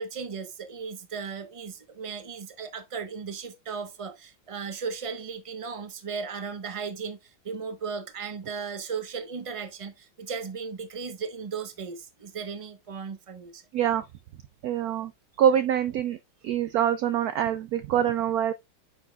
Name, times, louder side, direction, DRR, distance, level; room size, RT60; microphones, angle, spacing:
voice 1, 0.0-7.2 7.4-13.6, right 5 dB, 25° right, 0.7 m, -36 dB
voice 2, 13.7-14.1 14.6-15.1 15.4-16.2 16.4-18.5, right 9 dB, 80° right, 0.8 m, -25 dB
9.9 x 6.0 x 2.3 m
omnidirectional pair, 2.1 m